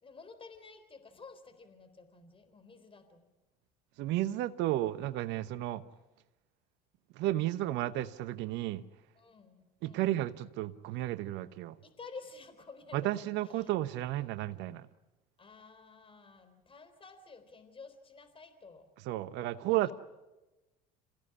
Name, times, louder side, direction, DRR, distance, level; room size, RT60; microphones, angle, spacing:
voice 1, 0.0-3.3 9.2-10.1 11.8-13.7 15.4-18.9 19.7-19.9, left 4 dB, 25° left, 4.0 m, -52 dB
voice 2, 4.0-5.8 7.1-8.8 9.8-11.8 12.9-14.9 19.1-19.9, right 15 dB, 65° right, 0.9 m, -33 dB
27.5 x 16.5 x 9.8 m
hypercardioid pair, 75°, 20 cm